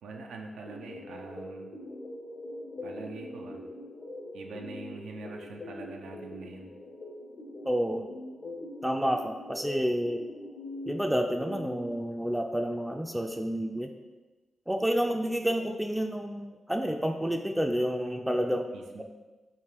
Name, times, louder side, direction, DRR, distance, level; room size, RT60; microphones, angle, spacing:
voice 1, 0.0-1.7 2.8-3.6 4.3-6.7 18.7-19.0, right 3 dB, 85° right, 2 dB, 0.4 m, -43 dB
sound 1, 0.7-11.9, left 1 dB, 60° left, 0.6 m, -42 dB
voice 2, 7.6-8.1 8.8-10.2 10.9-13.9 14.7-18.7, equal, 5° right, 4 dB, 0.3 m, -29 dB
3.5 x 2.3 x 4.5 m, 1.2 s
supercardioid pair, 45°, 0 cm